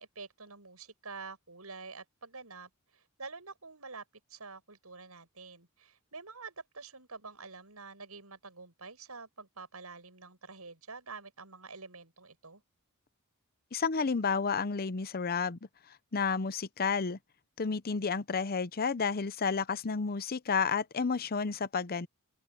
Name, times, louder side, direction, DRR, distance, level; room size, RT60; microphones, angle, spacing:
voice 1, 0.0-4.0 4.3-12.6, right 4 dB, 85° right, 7.9 m, -47 dB
voice 2, 13.7-15.6 16.1-17.2 17.6-22.1, left 5 dB, 45° left, 0.7 m, -31 dB
open air
head